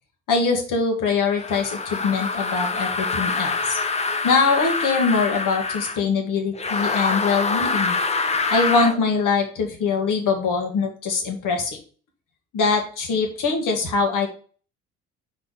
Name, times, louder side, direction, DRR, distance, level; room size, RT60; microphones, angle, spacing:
voice 1, 0.3-3.8 4.2-8.0 8.5-11.8 12.5-14.3, left 4 dB, 60° left, 3 dB, 1.9 m, -23 dB
sound 1, 1.4-6.0 6.5-9.0, left 4 dB, 20° left, 0.7 m, -25 dB
4.7 x 4.4 x 5.6 m, 0.42 s
hypercardioid pair, 60°, 35 cm